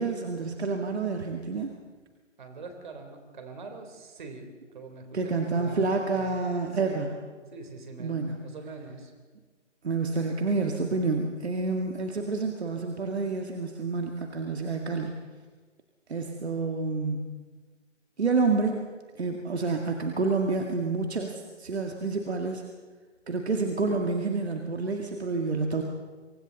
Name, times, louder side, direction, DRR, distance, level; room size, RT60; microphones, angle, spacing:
voice 1, 0.0-1.7 5.1-7.1 8.0-8.4 9.8-15.1 16.1-17.4 18.2-18.9 19.2-22.6 23.3-25.8, right 3 dB, 60° right, 3 dB, 2.1 m, -28 dB
voice 2, 2.4-4.4 4.7-6.3 6.8-7.1 7.5-9.1, right 3 dB, 40° right, 5 dB, 3.7 m, -43 dB
28.0 x 25.0 x 4.1 m, 1.4 s
figure-of-eight pair, 155°, 37 cm